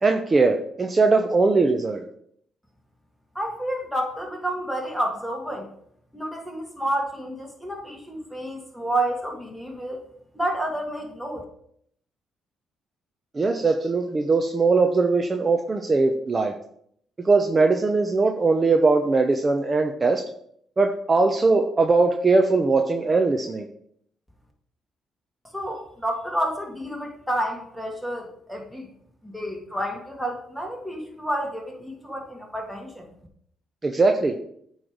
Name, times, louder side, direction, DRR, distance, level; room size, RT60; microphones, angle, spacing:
voice 1, 0.0-2.0 13.3-16.5 17.2-20.2 20.8-23.7 33.8-34.3, right 3 dB, 30° right, 4 dB, 0.7 m, -20 dB
voice 2, 3.4-5.7 6.1-10.0 10.3-11.4 25.5-28.9 29.2-33.1, right 1 dB, ahead, 0 dB, 1.9 m, -30 dB
8.4 x 3.2 x 5.1 m, 0.67 s
cardioid pair, 90°, 0 cm